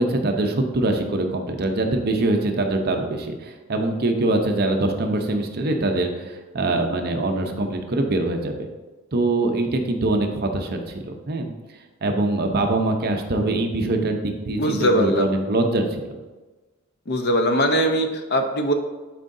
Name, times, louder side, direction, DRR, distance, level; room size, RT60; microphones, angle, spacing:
voice 1, 0.0-8.7 9.1-11.5 12.0-16.0, right 2 dB, 45° right, 4 dB, 0.7 m, -23 dB
voice 2, 14.6-15.4 17.1-18.7, equal, 50° left, 5 dB, 0.7 m, -21 dB
11.0 x 4.7 x 2.7 m, 1.2 s
head